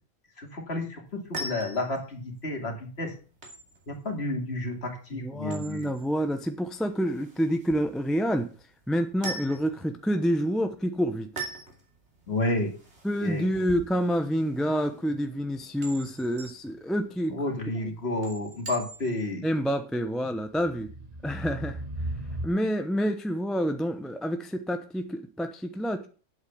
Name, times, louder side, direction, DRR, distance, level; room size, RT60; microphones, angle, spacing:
voice 1, 0.4-0.9 1.4-3.1 3.9-5.9 12.3-12.7 13.2-13.6 17.3-19.4, left 2 dB, 45° left, 3 dB, 2.6 m, -31 dB
sound 1, 1.1-19.3, right 2 dB, 50° right, 2.9 m, -44 dB
voice 2, 5.1-8.5 8.9-11.3 13.0-17.3 17.8-17.9 19.4-20.9 21.2-21.8 22.4-26.1, equal, ahead, 7 dB, 0.7 m, -28 dB
sound 2, 14.3-16.3 17.5-17.6 20.5-22.5, right 1 dB, 30° right, 1.1 m, -38 dB
8.3 x 8.2 x 7.0 m, 0.39 s
omnidirectional pair, 1.5 m